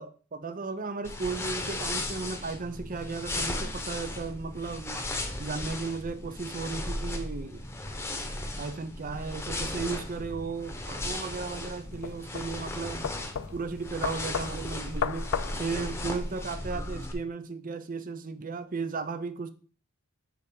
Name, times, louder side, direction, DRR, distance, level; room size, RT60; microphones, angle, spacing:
voice 1, 0.0-5.1 5.4-7.6 8.6-13.1 13.5-15.3 15.6-19.5, right 4 dB, 40° right, 0.6 m, -35 dB
sound 1, 1.0-17.1, left 1 dB, 10° left, 1.0 m, -36 dB
sound 2, 10.9-16.5, left 7 dB, 70° left, 0.4 m, -36 dB
7.7 x 3.9 x 5.3 m
head